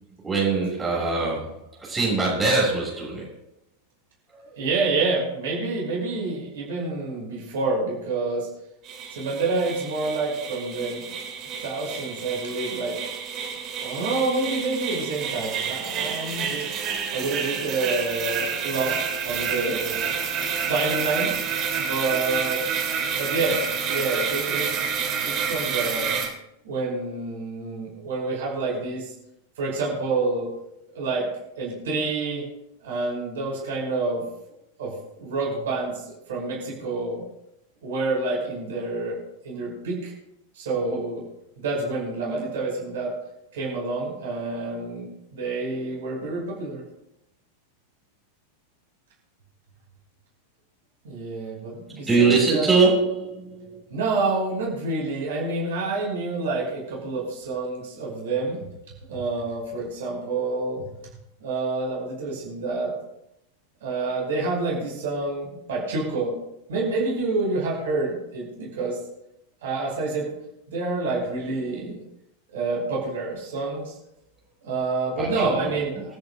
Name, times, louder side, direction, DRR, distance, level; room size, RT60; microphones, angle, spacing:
voice 1, 0.2-3.3 52.1-53.8 75.2-75.3 75.6-75.7, right 3 dB, 10° right, -4 dB, 6.7 m, -22 dB
voice 2, 4.6-8.5 9.1-11.0 11.6-13.0 13.5-16.7 17.1-20.1 20.7-21.4 21.7-22.7 23.1-26.2 26.6-29.1 29.6-30.5 30.9-31.3 31.6-32.4 32.8-34.2 34.8-37.2 37.8-39.2 39.4-40.1 40.5-41.2 41.6-43.1 43.5-46.8 51.0-52.7 53.9-58.6 59.1-60.8 61.4-62.9 63.8-66.4 66.7-69.0 69.6-70.3 70.7-72.0 72.5-73.9 74.6-76.1, right 3 dB, 60° right, -2 dB, 5.3 m, -28 dB
sound 1, 8.8-26.3, right 6 dB, 35° right, 3.2 m, -29 dB
28.0 x 10.5 x 2.5 m, 0.83 s
figure-of-eight pair, 90°, 0 cm